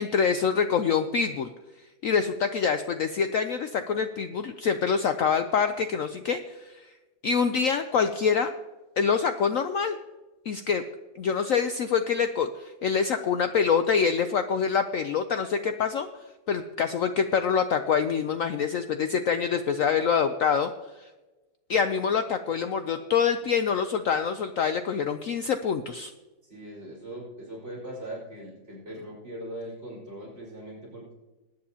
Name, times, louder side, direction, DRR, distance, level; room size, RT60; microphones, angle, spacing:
voice 1, 0.0-1.5 2.0-6.9 7.2-8.5 9.0-10.0 10.5-10.8 11.2-16.1 16.5-20.7 21.0-21.1 21.7-26.1, left 6 dB, 80° left, 8 dB, 0.7 m, -25 dB
voice 2, 26.4-31.1, right 1 dB, 35° right, -6 dB, 4.9 m, -40 dB
20.5 x 9.5 x 2.8 m, 1.1 s
omnidirectional pair, 2.0 m